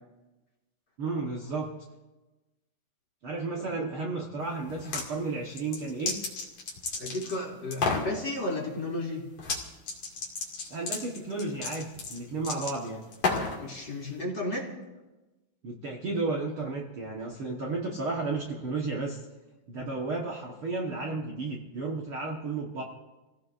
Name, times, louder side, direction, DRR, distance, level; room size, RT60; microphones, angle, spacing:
voice 1, 1.0-1.7 3.2-6.2 10.7-13.0 15.6-19.2 19.7-22.8, right 3 dB, 50° right, -2 dB, 1.8 m, -33 dB
sound 1, 4.7-5.1 5.5-7.4 7.7-8.1 9.4-9.6 9.9-13.6, left 4 dB, 50° left, 3.2 m, -31 dB
voice 2, 7.0-9.2 13.6-14.7, left 2 dB, 35° left, -2 dB, 3.1 m, -33 dB
28.5 x 17.5 x 2.6 m, 1.1 s
omnidirectional pair, 3.8 m